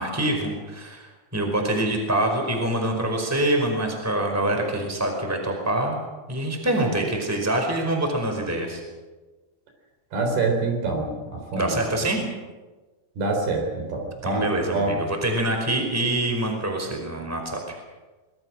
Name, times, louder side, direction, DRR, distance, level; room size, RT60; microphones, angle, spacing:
voice 1, 0.0-6.0 6.3-8.8 11.5-12.2 14.2-17.8, right 1 dB, 5° right, 3 dB, 4.5 m, -25 dB
voice 2, 10.1-11.8 13.2-15.0, right 3 dB, 65° right, 3 dB, 6.0 m, -26 dB
26.0 x 21.5 x 6.4 m, 1.2 s
omnidirectional pair, 4.8 m